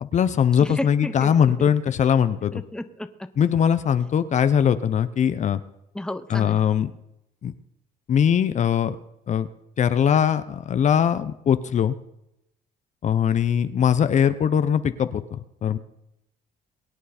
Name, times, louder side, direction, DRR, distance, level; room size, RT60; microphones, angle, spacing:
voice 1, 0.0-2.5 3.4-5.6 6.3-6.9 7.4-7.5 8.1-8.9 9.3-9.5 9.8-12.0 13.0-15.8, left 8 dB, 45° left, 12 dB, 0.9 m, -21 dB
voice 2, 0.6-1.3 1.6-1.7 2.5-3.3 5.9-6.7, left 1 dB, 5° left, 10 dB, 1.0 m, -32 dB
22.5 x 9.3 x 4.4 m, 0.84 s
cardioid pair, 110°, 17 cm